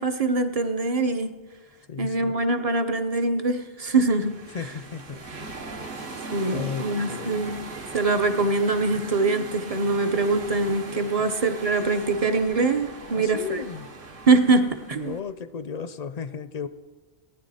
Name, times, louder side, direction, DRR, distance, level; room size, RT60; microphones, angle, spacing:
voice 1, 0.0-1.4 2.0-4.4 6.3-7.7 7.9-13.6 14.3-15.2, right 3 dB, 40° right, 8 dB, 0.7 m, -23 dB
voice 2, 1.9-2.4 4.5-5.2 6.4-7.4 11.2-11.3 13.1-13.9 15.0-16.7, left 6 dB, 55° left, 12 dB, 0.5 m, -34 dB
sound 1, 3.9-15.2, right 3 dB, 55° right, 1.2 m, -39 dB
17.5 x 9.8 x 4.1 m, 1.3 s
omnidirectional pair, 1.1 m